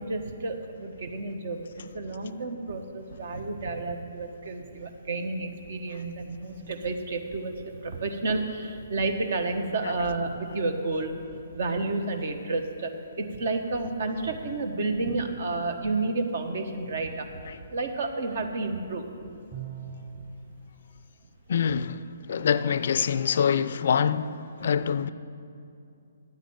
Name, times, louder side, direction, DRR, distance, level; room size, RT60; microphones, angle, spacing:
voice 1, 0.0-11.1 11.5-17.3 17.7-19.1 20.1-20.2, right 3 dB, 60° right, 1.3 m, -31 dB
Bowed string instrument, 19.5-20.4, right 7 dB, 25° right, 1.6 m, -39 dB
voice 2, 21.5-25.1, left 7 dB, 60° left, 0.4 m, -25 dB
9.4 x 8.2 x 8.8 m
hypercardioid pair, 135°, 0 cm